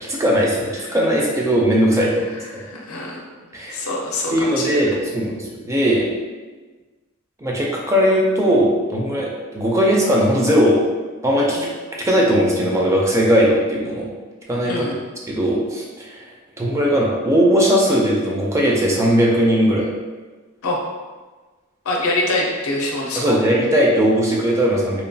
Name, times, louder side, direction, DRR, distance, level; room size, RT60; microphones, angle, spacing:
voice 1, 0.0-2.3 3.5-3.9 4.3-6.1 7.4-10.9 11.2-11.7 12.0-14.1 14.5-14.9 15.3-16.3 16.6-19.9 23.1-25.0, equal, 15° right, -3 dB, 0.3 m, -18 dB
voice 2, 2.4-3.2 3.7-4.9 14.6-15.0 20.6-20.8 21.8-23.4, left 2 dB, 70° left, 0 dB, 0.5 m, -25 dB
2.9 x 2.2 x 2.6 m, 1.3 s
head